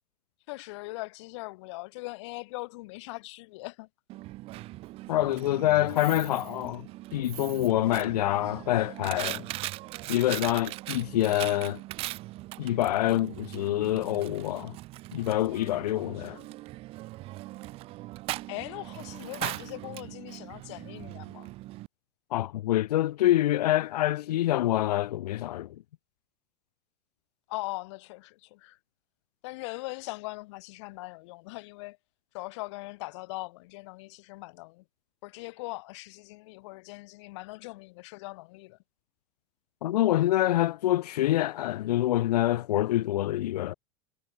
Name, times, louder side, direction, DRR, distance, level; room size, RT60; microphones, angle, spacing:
voice 1, 0.5-3.9 18.5-21.5 27.5-28.8 29.4-32.0 32.3-34.8 35.2-38.8, left 23 dB, 45° left, 3.3 m, -40 dB
Coin (dropping), 4.1-21.9, right 18 dB, 30° right, 7.4 m, -40 dB
voice 2, 5.1-9.5 10.1-11.8 12.6-14.8 15.1-16.4 22.3-25.7 39.8-43.7, left 14 dB, 85° left, 2.4 m, -26 dB
supercardioid pair, 180°, 20 cm